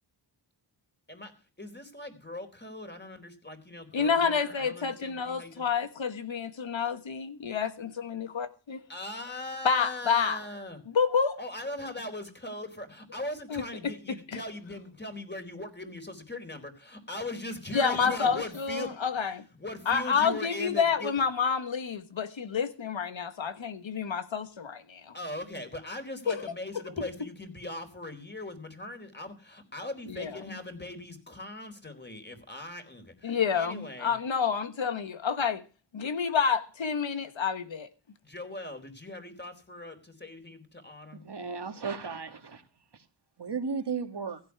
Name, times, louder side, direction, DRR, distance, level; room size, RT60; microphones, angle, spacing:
voice 1, 1.1-5.7 8.9-10.8 11.4-21.1 25.1-34.2 38.2-41.3, left 1 dB, 20° left, 4.1 m, -40 dB
voice 2, 3.9-8.8 9.6-10.4 10.9-11.4 13.5-13.9 14.3-14.4 17.7-19.4 19.9-25.1 26.3-26.4 30.1-30.6 33.2-35.6 35.9-37.9, left 6 dB, 70° left, 1.5 m, -29 dB
voice 3, 41.2-42.6 43.4-44.4, right 5 dB, 55° right, 2.0 m, -34 dB
16.0 x 10.5 x 4.7 m
cardioid pair, 50°, 48 cm